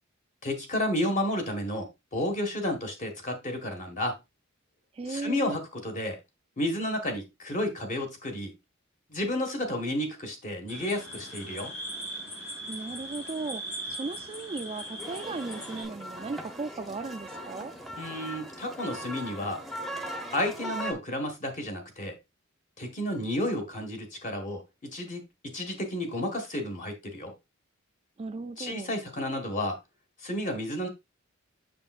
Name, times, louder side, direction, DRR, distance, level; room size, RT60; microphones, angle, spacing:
voice 1, 0.4-4.1 5.1-6.2 6.6-8.5 9.1-11.7 18.0-19.6 20.3-22.1 22.8-27.3 28.6-29.8 30.2-30.9, left 1 dB, 40° left, 1.6 m, -31 dB
voice 2, 4.9-5.6 12.7-13.6 13.9-17.7 28.2-29.0, right 3 dB, 30° right, 0.3 m, -36 dB
sound 1, 10.7-15.8, right 1 dB, 80° left, 4.7 m, -39 dB
sound 2, 15.0-20.9, equal, ahead, 0.8 m, -39 dB
7.0 x 6.2 x 2.4 m
head